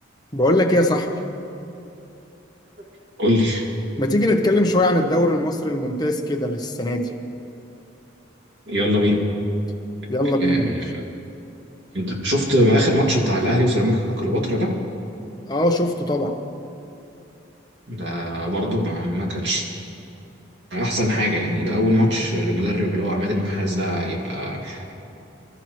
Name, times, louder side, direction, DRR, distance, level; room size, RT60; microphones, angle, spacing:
voice 1, 0.3-1.1 4.0-7.2 10.1-10.8 15.5-16.4, left 1 dB, 20° left, 3 dB, 0.9 m, -20 dB
voice 2, 3.2-3.7 8.7-9.2 10.4-11.0 11.9-14.7 17.9-19.6 20.7-24.9, equal, 60° right, -1 dB, 2.4 m, -22 dB
25.0 x 13.0 x 3.1 m, 2.8 s
head